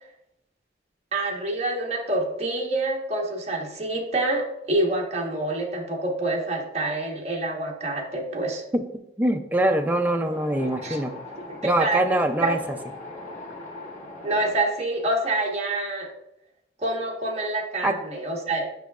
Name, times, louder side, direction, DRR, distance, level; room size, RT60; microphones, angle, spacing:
voice 1, 1.1-8.6 10.6-11.0 11.5-12.0 12.4-12.6 14.2-16.1 16.8-18.7, right 2 dB, 35° right, -1 dB, 1.2 m, -27 dB
voice 2, 9.2-11.1 11.6-12.8 17.8-18.0, right 1 dB, 10° right, 4 dB, 0.4 m, -23 dB
Wind, 9.9-14.5, left 2 dB, 40° left, 1.4 m, -40 dB
8.1 x 5.6 x 2.4 m, 0.82 s
head